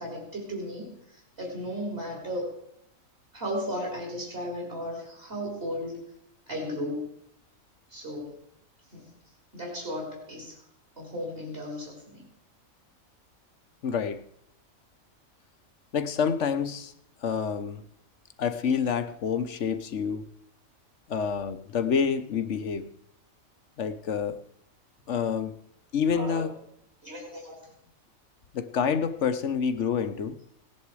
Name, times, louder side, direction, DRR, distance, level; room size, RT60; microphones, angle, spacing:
voice 1, 0.0-2.5 3.3-6.0 6.5-7.1 7.9-8.3 8.9-9.1 9.5-10.6 11.0-12.3 26.1-26.6 27.0-27.6, equal, 45° right, -2 dB, 4.2 m, -35 dB
voice 2, 13.8-14.2 15.9-16.9 17.2-17.8 18.4-20.3 21.1-22.9 23.8-24.4 25.1-25.5 25.9-26.5 28.5-30.4, left 6 dB, 60° left, 11 dB, 1.2 m, -28 dB
18.0 x 10.5 x 4.8 m, 0.75 s
omnidirectional pair, 1.4 m